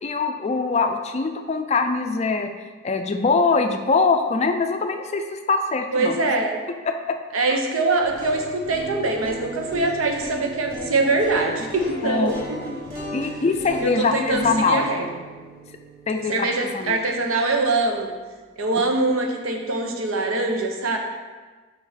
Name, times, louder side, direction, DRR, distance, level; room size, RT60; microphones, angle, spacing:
voice 1, 0.0-2.5 2.8-6.2 6.9-7.2 12.0-12.3 13.1-14.9 16.1-17.0, left 4 dB, 30° left, 6 dB, 0.3 m, -23 dB
voice 2, 5.9-6.5 7.3-12.6 13.8-15.1 16.3-18.1 18.6-21.0, right 2 dB, 90° right, 2 dB, 0.8 m, -23 dB
sound 1, 7.9-18.0, equal, 45° right, 1.5 m, -37 dB
4.9 x 4.7 x 4.1 m, 1.4 s
head